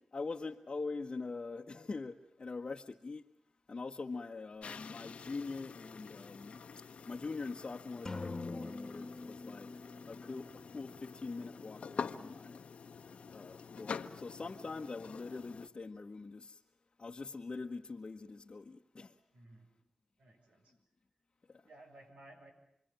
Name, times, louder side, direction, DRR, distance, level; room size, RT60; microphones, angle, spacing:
voice 1, 0.1-3.2 3.7-12.6 13.3-16.6 17.0-19.1 21.5-21.6, left 3 dB, 50° left, 1.3 m, -43 dB
sound 1, 4.6-15.7, left 5 dB, 75° left, 1.3 m, -47 dB
sound 2, 8.1-11.9, left 3 dB, 35° left, 1.8 m, -45 dB
voice 2, 19.3-19.7 20.2-20.8 21.7-22.5, right 1 dB, 80° right, 7.1 m, -57 dB
29.0 x 22.5 x 8.9 m
cardioid pair, 55°, 2 cm